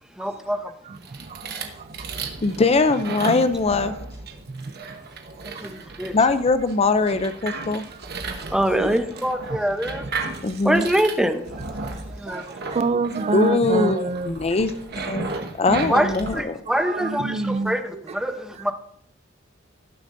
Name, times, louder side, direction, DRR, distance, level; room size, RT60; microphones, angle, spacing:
voice 1, 0.2-0.7 5.6-6.1 8.5-10.1 10.6-11.5 12.1-12.4 15.9-18.7, equal, 5° right, 0.8 m, -24 dB
voice 2, 0.8-2.2 4.5-5.0 5.5-5.8 8.7-9.0 9.9-10.6 11.8-14.3 15.9-16.0 16.7-18.0, right 3 dB, 35° right, 0.4 m, -29 dB
sound 1, 1.0-16.4, right 3 dB, 55° right, 1.1 m, -34 dB
voice 3, 2.4-3.9 6.1-7.8 10.4-10.9 13.3-16.6, left 3 dB, 30° left, 0.5 m, -21 dB
17.5 x 7.0 x 2.6 m
head